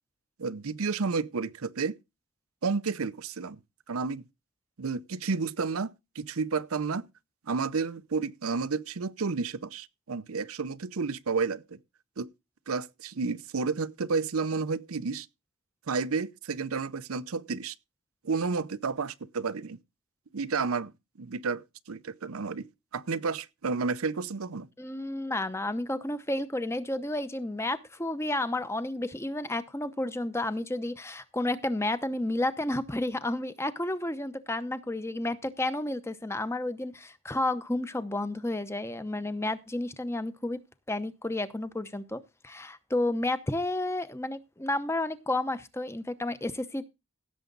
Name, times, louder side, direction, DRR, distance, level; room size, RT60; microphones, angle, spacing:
voice 1, 0.4-2.0 2.6-3.6 3.9-4.2 4.8-7.0 7.5-11.8 12.2-12.3 12.7-15.3 15.9-17.7 18.2-19.8 20.3-20.9 21.2-22.7 22.9-24.7, right 4 dB, 80° right, 0.7 m, -31 dB
voice 2, 24.8-40.6 40.9-46.8, left 1 dB, 10° left, 0.8 m, -31 dB
16.5 x 7.2 x 3.9 m
head